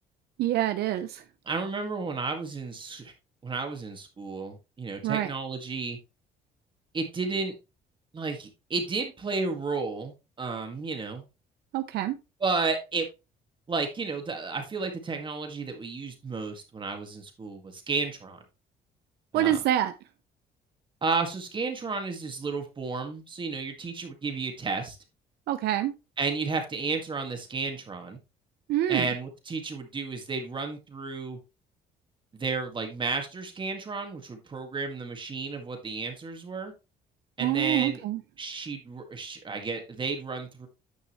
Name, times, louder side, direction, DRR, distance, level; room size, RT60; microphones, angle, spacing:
voice 1, 0.4-1.2 5.0-5.3 11.7-12.2 19.3-19.9 25.5-25.9 28.7-29.1 37.4-38.2, right 12 dB, 75° right, 0.7 m, -26 dB
voice 2, 1.5-3.1 3.4-6.0 6.9-7.5 8.1-11.2 12.4-13.1 13.7-18.4 19.3-19.6 21.0-25.0 26.2-28.2 28.9-31.4 32.3-36.7 37.4-38.0 38.4-40.7, right 4 dB, 30° right, 1.9 m, -32 dB
9.8 x 5.4 x 3.0 m
cardioid pair, 110°, 17 cm